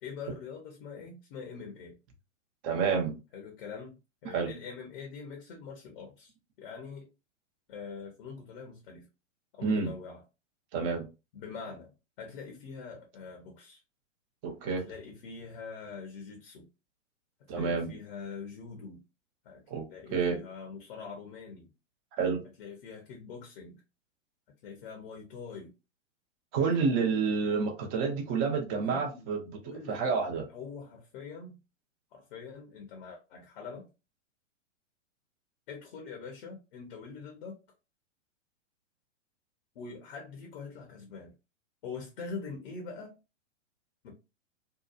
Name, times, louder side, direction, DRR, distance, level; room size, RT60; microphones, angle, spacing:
voice 1, 0.0-2.0 3.3-7.1 7.7-9.1 9.5-10.2 11.3-13.8 14.6-16.7 17.5-19.0 19.4-19.6 19.9-21.7 22.6-23.8 24.6-25.7 28.7-29.3 29.6-31.6 32.1-33.9 35.7-37.6 39.7-41.3 41.8-43.2 44.0-44.1, left 5 dB, 45° left, 0.7 m, -44 dB
voice 2, 2.6-3.2 4.3-4.5 9.6-9.9 10.7-11.1 14.4-14.8 17.5-17.9 19.7-19.8 20.1-20.4 22.2-22.4 26.5-29.5 29.9-30.5, right 5 dB, 30° right, 0.6 m, -29 dB
2.8 x 2.2 x 2.3 m
figure-of-eight pair, 110°, 38 cm